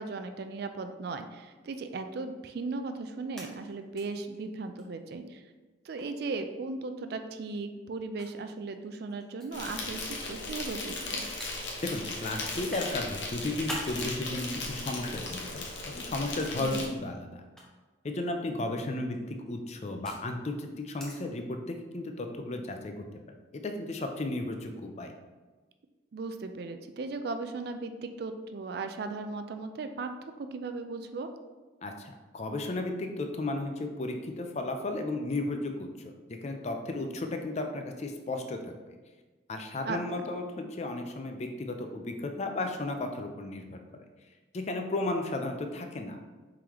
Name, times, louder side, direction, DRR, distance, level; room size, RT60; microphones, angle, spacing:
voice 1, 0.0-5.4 5.9-11.3 16.6-16.9 26.1-30.1 30.4-31.3 39.8-40.0, right 3 dB, 55° right, 8 dB, 0.4 m, -37 dB
sound 1, 3.4-4.0 4.3-4.4 4.8-4.9 6.0-6.2 7.3-7.4 8.2-9.5 10.0-10.1 10.5-10.6 11.4-11.5 12.1-12.9 13.3-13.9 14.8-15.5 16.5-16.8 17.4-17.6 19.0-20.3 21.0-21.2, equal, 5° left, 0.7 m, -42 dB
Insect, 9.5-16.9, left 3 dB, 65° left, 0.8 m, -37 dB
voice 2, 11.8-17.4 18.0-23.2 23.5-25.1 31.8-38.6 39.5-44.0 44.5-46.2, left 2 dB, 35° left, 5 dB, 0.4 m, -34 dB
4.7 x 3.8 x 3.0 m, 1.3 s
head